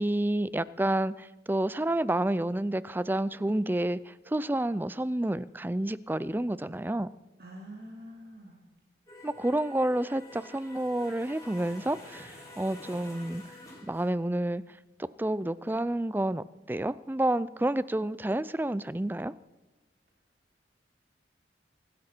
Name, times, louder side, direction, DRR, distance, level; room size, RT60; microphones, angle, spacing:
voice 1, 0.0-7.1 9.2-13.4 13.8-14.6 15.0-19.3, right 1 dB, 10° right, 17 dB, 0.4 m, -29 dB
voice 2, 7.4-8.6, equal, 55° right, -2 dB, 2.6 m, -45 dB
sound 1, 9.1-14.1, left 1 dB, 20° left, 5.4 m, -49 dB
24.5 x 12.5 x 4.5 m, 1.2 s
head